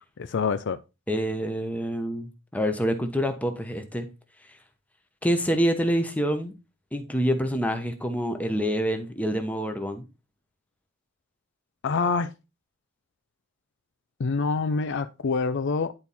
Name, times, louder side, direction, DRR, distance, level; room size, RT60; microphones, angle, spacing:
voice 1, 0.2-0.8 11.8-12.3 14.2-15.9, left 4 dB, 55° left, 0.4 m, -26 dB
voice 2, 1.1-4.1 5.2-6.5 6.9-10.0, equal, 5° left, 1.1 m, -26 dB
10.5 x 4.4 x 4.1 m
head